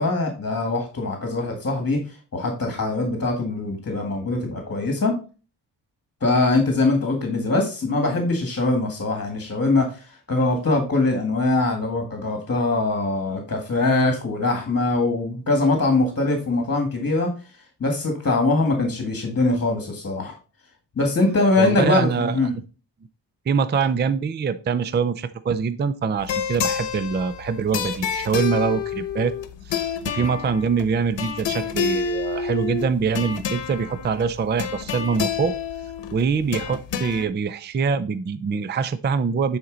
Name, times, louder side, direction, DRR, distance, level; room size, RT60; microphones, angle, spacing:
voice 1, 0.0-5.2 6.2-17.3 17.8-20.3 21.0-22.5, left 2 dB, 35° left, 3 dB, 1.8 m, -22 dB
voice 2, 21.6-22.5 23.5-29.3 29.7-35.5 36.1-39.6, right 6 dB, 25° right, 13 dB, 0.4 m, -24 dB
sound 1, 26.2-37.3, left 7 dB, 80° left, 0.9 m, -29 dB
9.5 x 4.4 x 3.9 m, 0.35 s
wide cardioid pair, 125°, 43 cm